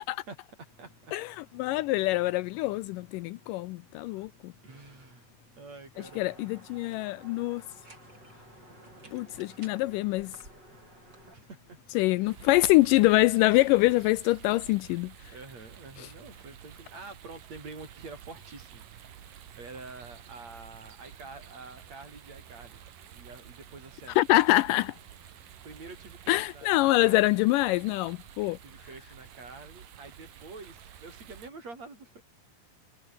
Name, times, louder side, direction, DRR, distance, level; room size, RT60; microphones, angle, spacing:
voice 1, 0.3-1.1 4.6-5.3 5.5-6.5 11.3-11.8 12.2-12.4 15.3-18.9 19.5-22.8 23.1-24.2 25.6-27.2 28.4-32.2, right 3 dB, 50° right, 7.5 m, -47 dB
sound 1, 0.6-16.4, left 5 dB, 45° left, 5.2 m, -60 dB
voice 2, 1.1-4.5 6.2-7.6 9.1-10.3 12.0-15.1 16.0-16.1 24.2-25.0 26.3-28.6, left 19 dB, 80° left, 2.0 m, -25 dB
sound 2, 5.9-11.3, right 2 dB, 30° right, 8.7 m, -53 dB
sound 3, 12.2-31.5, right 10 dB, 75° right, 3.5 m, -50 dB
omnidirectional pair, 4.0 m